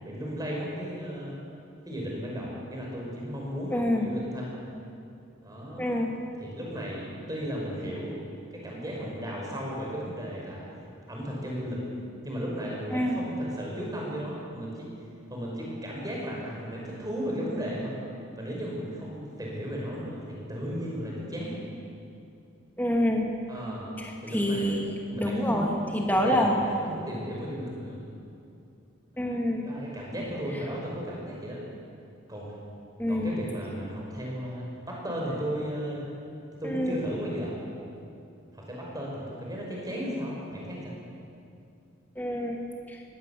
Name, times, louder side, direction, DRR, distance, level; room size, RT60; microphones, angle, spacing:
voice 1, 0.0-1.3 1.9-4.5 5.4-5.9 6.4-8.2 8.5-10.6 11.1-11.8 12.2-14.9 15.3-17.9 18.4-21.6 23.5-23.9 24.2-24.8 25.1-25.8 26.1-28.0 29.1-29.3 29.6-31.6 32.3-32.5 33.1-36.1 36.6-37.6 38.5-40.9, equal, 20° right, -3 dB, 5.5 m, -35 dB
voice 2, 3.7-4.1 5.8-6.1 12.9-13.2 22.8-23.3 24.0-24.9 25.2-26.6 29.2-29.6 33.0-33.3 36.6-37.0 42.2-42.6, left 1 dB, 10° left, 1 dB, 2.3 m, -26 dB
20.0 x 16.5 x 8.5 m, 2.5 s
head